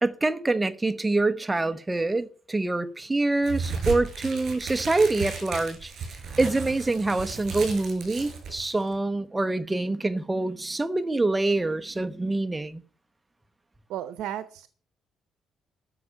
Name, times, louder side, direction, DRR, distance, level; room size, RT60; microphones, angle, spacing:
voice 1, 0.0-5.9 6.4-12.8, right 2 dB, 15° right, 1.0 m, -25 dB
sound 1, 3.4-8.9, right 5 dB, 65° right, 6.6 m, -35 dB
voice 2, 13.9-14.7, right 12 dB, 85° right, 0.8 m, -34 dB
13.0 x 6.5 x 8.6 m
cardioid pair, 90°, 0 cm